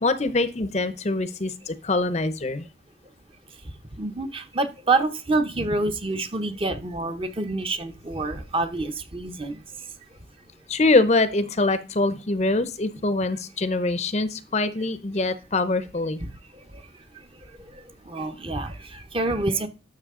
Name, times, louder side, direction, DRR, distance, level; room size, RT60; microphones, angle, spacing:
voice 1, 0.0-2.7 10.7-16.2, left 2 dB, 35° left, 13 dB, 0.6 m, -24 dB
voice 2, 4.0-9.6 16.2-16.3 18.1-19.7, right 2 dB, 30° right, 7 dB, 0.8 m, -27 dB
12.5 x 6.3 x 3.7 m, 0.33 s
head